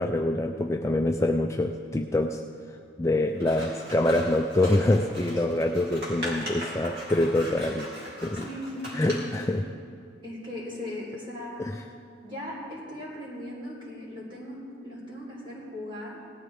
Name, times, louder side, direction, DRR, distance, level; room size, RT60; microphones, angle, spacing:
voice 1, 0.0-2.4 3.0-7.9 8.2-8.5 8.9-9.7 11.6-11.7, left 1 dB, 15° left, 3 dB, 0.3 m, -25 dB
Scissors, 3.4-9.5, equal, 60° right, 3.2 m, -39 dB
voice 2, 8.3-9.5 10.2-11.7 12.2-16.2, left 1 dB, 25° right, -5 dB, 3.9 m, -38 dB
18.5 x 13.0 x 3.6 m, 2.4 s
head